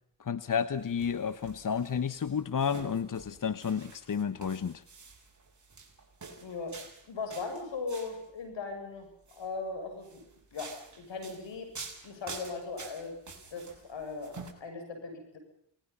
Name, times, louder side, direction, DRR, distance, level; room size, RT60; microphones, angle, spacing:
voice 1, 0.2-4.8, left 7 dB, 45° left, 14 dB, 1.2 m, -31 dB
sound 1, 0.7-8.2 9.1-9.5 10.0-14.5, right 4 dB, 40° right, 6.4 m, -48 dB
voice 2, 6.4-6.8 7.1-9.1 9.3-10.2 10.5-11.7 12.0-13.1 13.5-15.4, left 4 dB, 75° left, 5 dB, 7.7 m, -38 dB
28.5 x 20.5 x 5.7 m, 0.66 s
cardioid pair, 60°, 44 cm